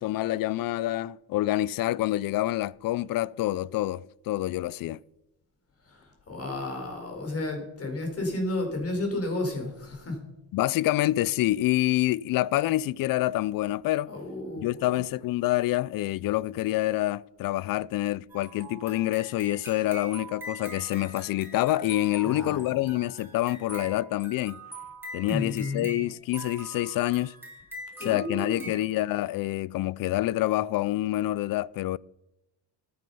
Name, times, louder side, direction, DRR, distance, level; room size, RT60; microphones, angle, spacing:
voice 1, 0.0-5.0 10.5-14.1 14.6-24.6 25.1-27.3 28.0-32.0, left 16 dB, 65° left, 0.5 m, -27 dB
voice 2, 5.8-10.2 14.1-15.0 22.2-22.6 25.2-25.8 28.0-28.7, left 2 dB, 40° left, 4.4 m, -32 dB
sound 1, 18.3-28.8, right 1 dB, 5° right, 3.9 m, -43 dB
13.0 x 9.6 x 5.5 m
cardioid pair, 125°, 38 cm